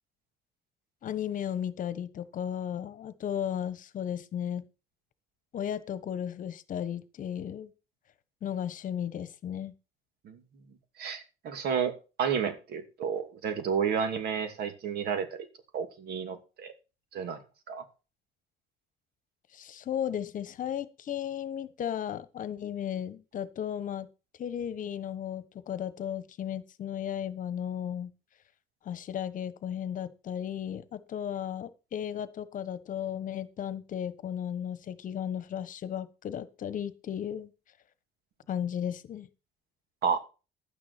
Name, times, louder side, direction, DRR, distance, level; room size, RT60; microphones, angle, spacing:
voice 1, 1.0-4.6 5.5-7.7 8.4-9.7 19.5-24.1 24.4-28.1 28.8-37.5 38.5-39.3, left 9 dB, 50° left, 15 dB, 1.2 m, -35 dB
voice 2, 11.0-11.9 12.2-15.3 15.7-16.7 17.1-17.4 17.7-17.8 40.0-40.2, right 7 dB, 70° right, 8 dB, 2.5 m, -31 dB
12.0 x 9.6 x 4.4 m, 0.31 s
cardioid pair, 110°, 17 cm